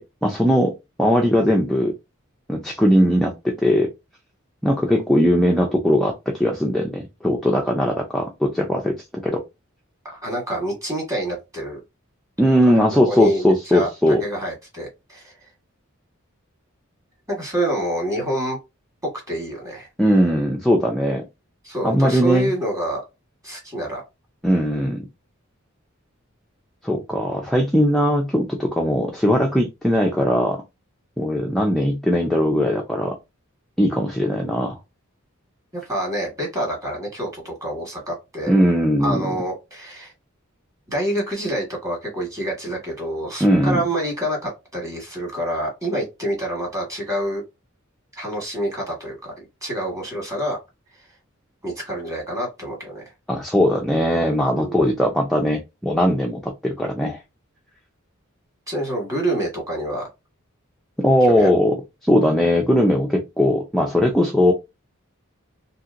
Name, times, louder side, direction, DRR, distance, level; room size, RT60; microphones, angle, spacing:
voice 1, 0.0-1.9 2.5-3.9 4.6-9.0 9.2-9.4 12.4-14.2 20.0-21.2 21.8-22.5 24.4-25.1 26.8-30.6 31.2-33.2 33.8-34.8 38.5-39.3 43.4-43.8 53.3-57.2 61.0-61.8 62.0-64.5, equal, ahead, 0.4 m, -19 dB
voice 2, 10.0-11.8 12.6-12.7 13.1-15.3 17.3-18.6 19.0-19.9 21.6-23.0 23.4-24.0 35.7-38.5 39.0-40.1 40.9-47.4 48.1-49.3 49.6-50.6 51.6-53.0 54.5-54.7 58.7-60.1 61.3-61.5, right 1 dB, 15° right, 1.4 m, -27 dB
2.8 x 2.8 x 2.4 m
head